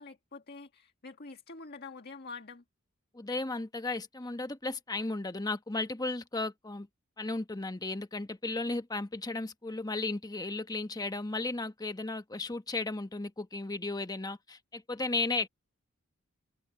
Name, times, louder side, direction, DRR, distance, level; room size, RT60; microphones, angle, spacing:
voice 1, 0.0-2.6, left 4 dB, 50° left, 1.8 m, -46 dB
voice 2, 3.1-6.9 7.2-15.5, left 3 dB, 20° left, 1.0 m, -35 dB
head